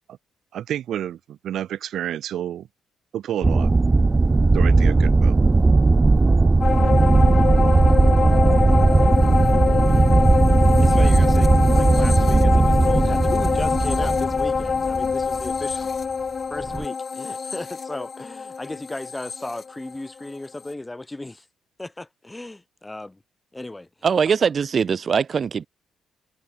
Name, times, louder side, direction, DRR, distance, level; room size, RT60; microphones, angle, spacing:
voice 1, 0.5-2.7 3.1-3.7 4.5-5.4, right 11 dB, 70° right, 1.1 m, -29 dB
sound 1, 3.4-15.5 16.6-16.8, right 3 dB, 25° right, 0.5 m, -17 dB
sound 2, 6.6-20.3 20.7-20.8, left 5 dB, 40° left, 0.5 m, -24 dB
voice 2, 10.8-15.9 16.5-21.5 21.8-23.2 23.5-23.9, left 2 dB, 15° left, 5.9 m, -35 dB
voice 3, 24.0-25.7, right 6 dB, 45° right, 1.1 m, -21 dB
cardioid pair, 90°, 0 cm